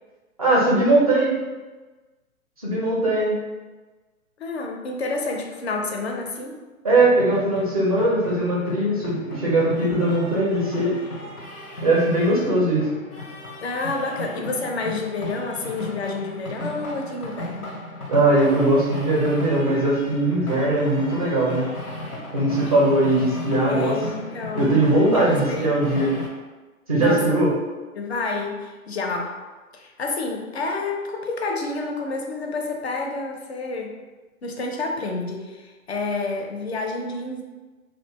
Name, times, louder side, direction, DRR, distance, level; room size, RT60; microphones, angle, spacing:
voice 1, 0.4-1.3 2.6-3.4 6.8-10.9 11.8-12.9 18.1-21.7 22.3-23.9 24.5-26.2 26.9-27.5, right 1 dB, 30° right, -5 dB, 0.4 m, -20 dB
voice 2, 4.4-6.6 13.6-17.8 23.7-26.1 27.0-27.4 27.9-29.4 29.7-34.0 34.4-37.4, left 3 dB, 50° left, 2 dB, 0.5 m, -29 dB
sound 1, 7.0-26.3, left 1 dB, 90° left, 0.7 m, -35 dB
2.5 x 2.1 x 2.9 m, 1.3 s
figure-of-eight pair, 125°, 43 cm